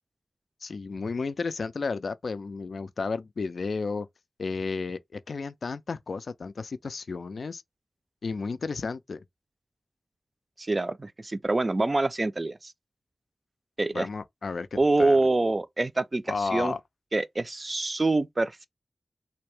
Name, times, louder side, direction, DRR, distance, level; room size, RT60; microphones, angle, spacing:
voice 1, 0.6-4.1 4.4-7.6 8.2-9.2 13.9-15.2 16.3-16.8, left 4 dB, 75° left, 0.3 m, -32 dB
voice 2, 10.6-12.7 13.8-14.1 14.8-16.7 17.1-18.7, right 2 dB, 35° right, 0.4 m, -26 dB
3.4 x 2.7 x 3.2 m
wide cardioid pair, 80°, 0 cm